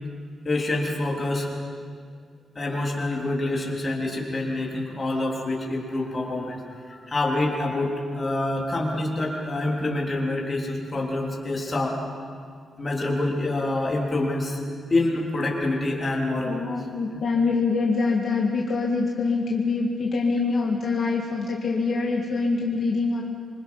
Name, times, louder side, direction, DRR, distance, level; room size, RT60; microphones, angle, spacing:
voice 1, 0.4-1.5 2.6-12.0 12.8-14.6 14.9-16.6 17.1-17.2, left 2 dB, 25° left, -2 dB, 3.5 m, -26 dB
voice 2, 16.5-23.2, left 4 dB, 45° left, -2 dB, 1.9 m, -24 dB
26.5 x 24.5 x 5.6 m, 2.1 s
wide cardioid pair, 180°, 0 cm